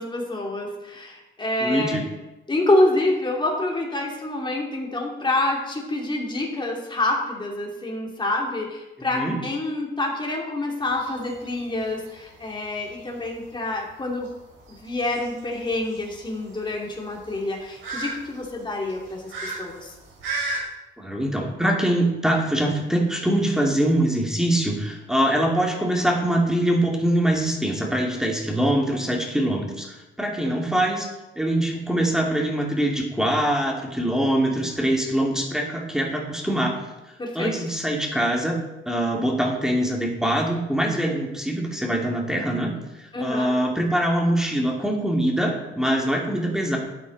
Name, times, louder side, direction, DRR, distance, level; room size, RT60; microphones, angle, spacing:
voice 1, 0.0-2.0 2.5-14.3 14.7-19.9 30.4-30.5 37.2-37.5 43.1-43.5, left 2 dB, 25° left, 0 dB, 3.0 m, -27 dB
voice 2, 1.6-2.0 9.0-9.4 21.0-31.1 31.4-36.8 37.3-38.6 38.9-42.7 43.0-46.8, right 1 dB, 5° right, 0 dB, 2.6 m, -23 dB
sound 1, 10.8-20.6, right 2 dB, 75° right, 4.8 m, -36 dB
13.0 x 8.5 x 4.2 m, 1.0 s
cardioid pair, 90°, 20 cm